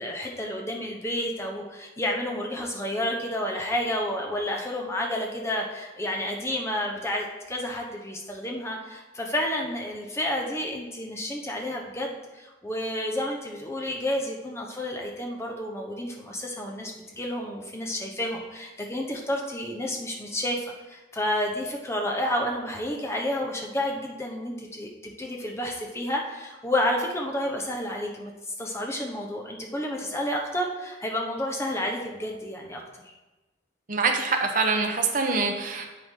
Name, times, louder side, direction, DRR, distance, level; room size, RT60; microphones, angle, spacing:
voice 1, 0.0-20.6 20.9-32.8, left 1 dB, 15° left, 0 dB, 1.0 m, -30 dB
voice 2, 33.9-35.9, right 4 dB, 45° right, 3 dB, 1.0 m, -25 dB
8.4 x 8.0 x 3.8 m, 1.1 s
head